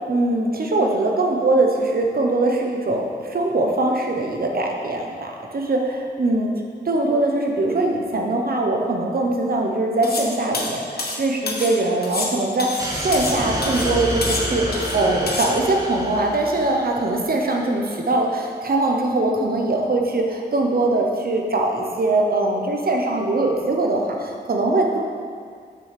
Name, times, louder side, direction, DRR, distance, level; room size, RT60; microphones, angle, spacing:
voice 1, 0.1-6.5 6.9-25.0, right 2 dB, 60° right, 1 dB, 0.9 m, -22 dB
sound 1, 10.0-10.3 10.5-11.8 12.0-13.4 13.6-13.9 14.2-15.0 15.3-15.5, left 2 dB, 65° left, 1.0 m, -28 dB
sound 2, 12.8-17.1, equal, 20° right, 1.4 m, -28 dB
7.7 x 6.1 x 3.4 m, 2.1 s
wide cardioid pair, 70°, 18 cm